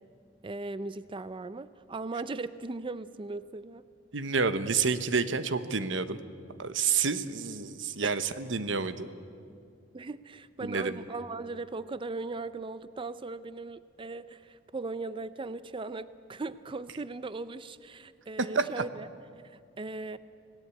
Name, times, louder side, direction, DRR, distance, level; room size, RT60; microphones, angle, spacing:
voice 1, 0.4-3.9 8.0-8.2 9.9-19.1 19.4-20.2, right 3 dB, 25° right, 14 dB, 0.5 m, -38 dB
voice 2, 4.1-6.2 6.6-9.1 10.6-10.9 18.5-18.8, right 5 dB, 85° right, 12 dB, 1.0 m, -29 dB
26.0 x 18.0 x 8.4 m, 2.4 s
head